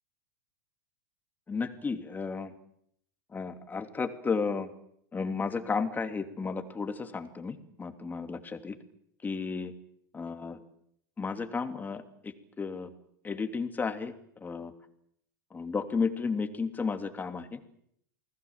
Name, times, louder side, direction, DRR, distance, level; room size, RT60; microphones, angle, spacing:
voice 1, 1.5-2.5 3.3-4.7 5.1-8.7 9.2-9.7 10.1-10.6 11.2-12.9 13.2-14.1 14.4-14.7 15.5-17.6, left 5 dB, 20° left, 7 dB, 3.0 m, -33 dB
29.0 x 19.5 x 7.5 m, 0.70 s
hypercardioid pair, 105°, 10 cm